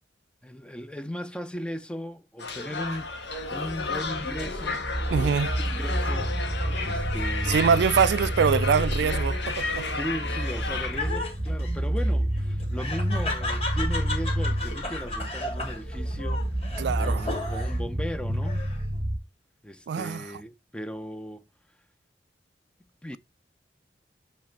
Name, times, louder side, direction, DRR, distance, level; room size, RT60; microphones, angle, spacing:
voice 1, 0.4-7.9 9.9-18.7 19.6-21.5 23.0-23.2, equal, 5° left, 0.4 m, -37 dB
sound 1, 2.4-11.2, left 3 dB, 75° left, 1.6 m, -33 dB
sound 2, 2.8-19.2, right 1 dB, 20° right, 1.0 m, -29 dB
voice 2, 5.1-5.5 7.5-9.9 16.8-17.5 19.9-20.3, right 6 dB, 70° right, 0.3 m, -24 dB
Laughter, 9.4-17.9 18.3-19.0, left 2 dB, 35° left, 2.4 m, -35 dB
7.5 x 3.3 x 4.3 m
head